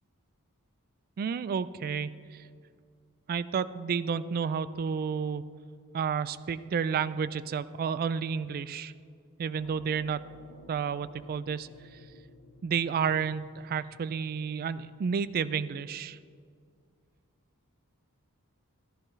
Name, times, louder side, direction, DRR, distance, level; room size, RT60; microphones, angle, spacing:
voice 1, 1.2-2.4 3.3-5.4 5.9-8.9 9.4-10.3 10.7-11.7 12.6-16.2, right 6 dB, 40° right, 15 dB, 0.3 m, -31 dB
sound 1, 9.4-15.3, equal, 65° left, 1.4 m, -54 dB
13.5 x 11.5 x 3.2 m, 2.2 s
head